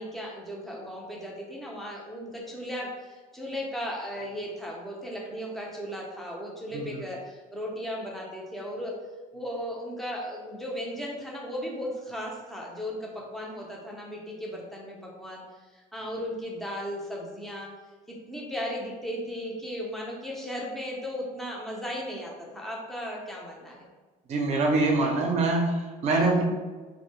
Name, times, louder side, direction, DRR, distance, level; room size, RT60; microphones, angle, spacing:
voice 1, 0.0-8.9 9.3-15.4 15.9-17.7 18.3-23.9 26.1-26.3, equal, ahead, -3 dB, 0.6 m, -36 dB
voice 2, 24.3-26.4, right 2 dB, 45° right, 1 dB, 0.6 m, -24 dB
2.6 x 2.1 x 3.1 m, 1.3 s
cardioid pair, 130°, 16 cm